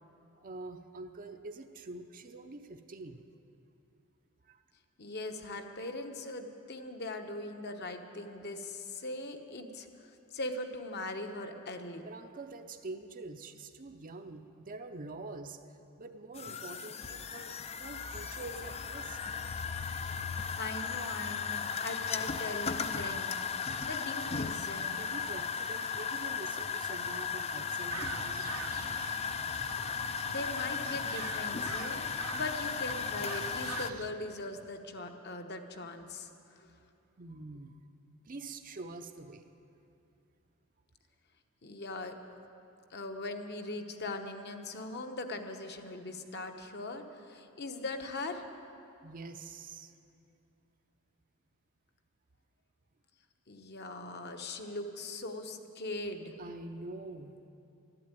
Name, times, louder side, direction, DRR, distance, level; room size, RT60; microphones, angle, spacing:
voice 1, 0.4-3.2 4.4-4.6 12.0-17.5 17.8-19.2 25.0-28.5 37.2-37.8 38.2-39.5 49.0-49.9 56.4-57.3, right 3 dB, 40° right, 6 dB, 0.6 m, -45 dB
voice 2, 5.0-12.1 20.6-25.0 30.2-36.7 41.6-42.2 42.9-48.4 53.5-56.4, left 2 dB, 50° left, 6 dB, 1.0 m, -40 dB
sound 1, 16.4-33.9, left 6 dB, 30° left, 0.4 m, -36 dB
sound 2, 27.9-34.1, right 5 dB, 75° right, 0.8 m, -44 dB
12.5 x 11.5 x 9.1 m, 2.7 s
head